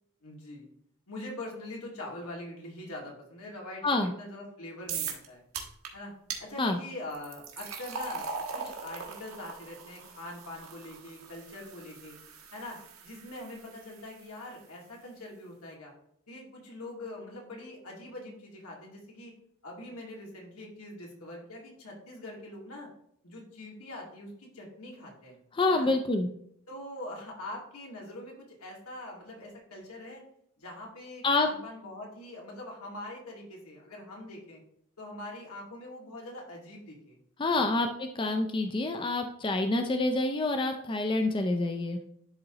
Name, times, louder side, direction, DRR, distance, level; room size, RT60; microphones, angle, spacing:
voice 1, 0.2-0.7 1.1-5.4 5.9-6.1 6.4-12.2 12.5-15.9 16.3-19.3 19.6-22.9 23.2-25.4 25.7-25.9 26.7-30.2 30.6-34.6 35.0-37.2 37.5-37.7, left 1 dB, 90° left, -2 dB, 2.1 m, -43 dB
sound 1, 4.9-5.3 5.5-5.9 6.3-6.4 7.1-14.2, right 5 dB, 85° right, 1.3 m, -40 dB
voice 2, 25.5-26.3 31.2-31.5 37.4-42.0, left 2 dB, 20° left, 6 dB, 0.4 m, -27 dB
11.5 x 3.8 x 3.0 m, 0.71 s
head